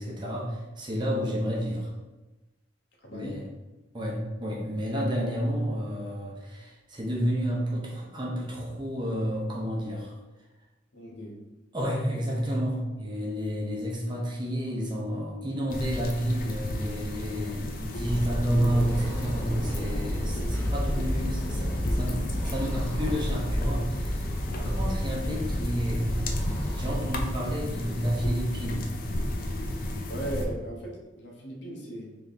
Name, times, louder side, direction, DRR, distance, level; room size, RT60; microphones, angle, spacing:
voice 1, 0.0-1.9 3.1-3.4 3.9-10.2 11.7-26.1 26.7-28.9, equal, 25° right, -2 dB, 0.8 m, -30 dB
voice 2, 3.0-3.5 10.9-11.5 24.6-24.8 29.7-32.2, right 1 dB, 65° left, 0 dB, 0.9 m, -38 dB
sound 1, 15.7-30.5, left 1 dB, 50° left, 0.5 m, -34 dB
sound 2, 18.0-27.0, equal, 5° left, 1.2 m, -31 dB
3.6 x 3.3 x 4.0 m, 1.1 s
head